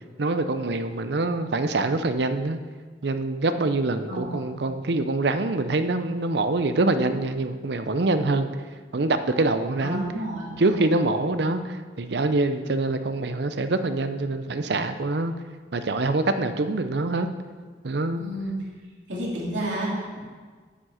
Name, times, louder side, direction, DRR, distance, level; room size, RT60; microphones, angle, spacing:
voice 1, 0.2-2.6 3.0-8.5 8.9-10.0 10.6-15.3 15.7-17.3 17.8-18.3, right 2 dB, 65° right, 9 dB, 0.6 m, -25 dB
voice 2, 4.1-4.5 9.8-10.9 18.1-18.5 19.1-20.2, right 1 dB, 90° right, -5 dB, 3.2 m, -31 dB
9.6 x 6.3 x 5.7 m, 1.5 s
head